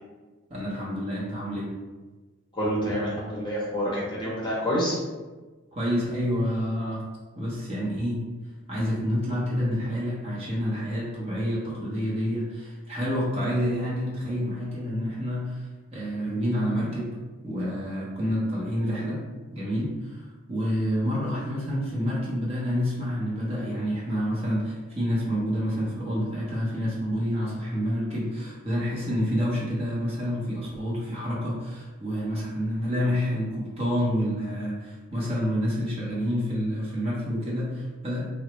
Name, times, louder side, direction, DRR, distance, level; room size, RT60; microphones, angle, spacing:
voice 1, 0.5-1.7 5.7-7.0 7.4-8.2 8.7-17.1 17.4-19.2 19.5-38.3, equal, 30° right, -6 dB, 0.7 m, -28 dB
voice 2, 2.5-5.0, equal, 20° left, -6 dB, 0.8 m, -27 dB
3.8 x 2.1 x 2.9 m, 1.3 s
head